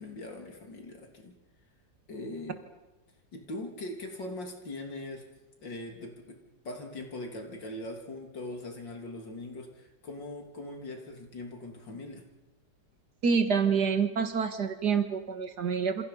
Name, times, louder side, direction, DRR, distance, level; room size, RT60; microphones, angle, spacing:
voice 1, 0.0-1.3 2.1-2.6 3.3-5.2 5.6-6.4 6.7-12.2, left 2 dB, 90° left, 2 dB, 3.9 m, -41 dB
voice 2, 13.2-16.0, right 6 dB, 65° right, 8 dB, 2.3 m, -27 dB
27.5 x 27.0 x 5.6 m, 1.1 s
omnidirectional pair, 1.9 m